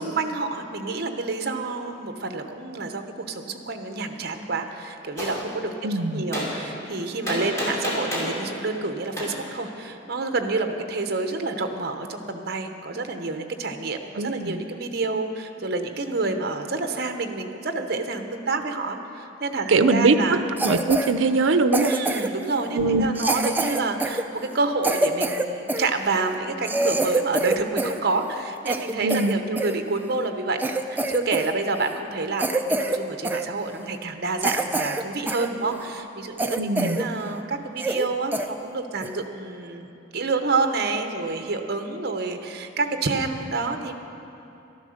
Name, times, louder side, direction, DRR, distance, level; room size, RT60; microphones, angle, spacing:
voice 1, 0.0-20.4 21.9-30.6 30.9-43.9, right 3 dB, 55° right, 6 dB, 0.9 m, -28 dB
Gunshot gunfire, 5.2-5.4 6.3-6.5 7.3-8.3 9.2-9.3, equal, 15° left, 2.7 m, -28 dB
voice 2, 5.8-6.3 14.2-14.6 19.7-21.9 22.7-23.1 29.0-29.4 36.6-37.0, right 3 dB, 85° right, 10 dB, 0.6 m, -21 dB
Cough, 20.6-21.1 21.7-22.4 23.2-25.9 26.3-26.4 26.6-28.0 28.3-29.8 30.2-30.3 30.6-31.5 31.8-32.0 32.4-33.0 33.2-33.5 34.0-34.1 34.4-35.5 35.9-36.0 36.4-37.1 37.4-37.5 37.8-38.1 38.3-38.5 39.0-39.2, right 2 dB, 10° right, 0.4 m, -26 dB
12.0 x 10.5 x 6.5 m, 2.8 s
head